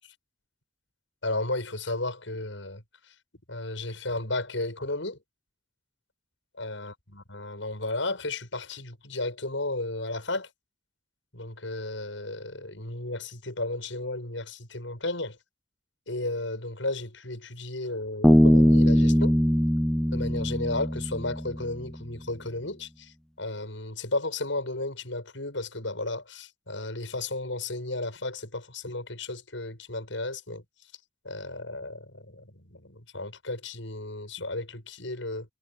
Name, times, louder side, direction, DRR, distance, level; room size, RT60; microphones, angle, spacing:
voice 1, 1.2-2.8 3.5-5.2 6.5-10.5 11.3-15.4 16.1-19.7 20.1-30.6 31.2-35.5, left 2 dB, 85° left, 7.0 m, -34 dB
Bass guitar, 18.2-21.8, equal, ahead, 0.6 m, -21 dB
head